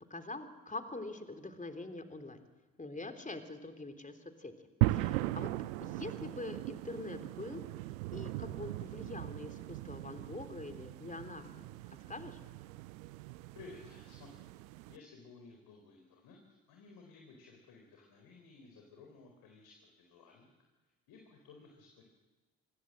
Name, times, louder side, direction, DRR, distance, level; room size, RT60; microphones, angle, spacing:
voice 1, 0.1-2.4 2.8-5.5 5.8-7.6 8.1-11.7 12.1-12.4, left 2 dB, 20° left, 7 dB, 3.4 m, -44 dB
sound 1, 4.8-15.0, right 18 dB, 70° right, 0.7 m, -38 dB
voice 2, 13.5-14.5 14.8-20.5 21.1-22.0, left 4 dB, 60° left, 2 dB, 4.4 m, -56 dB
26.0 x 20.5 x 7.7 m, 1.2 s
figure-of-eight pair, 45°, 41 cm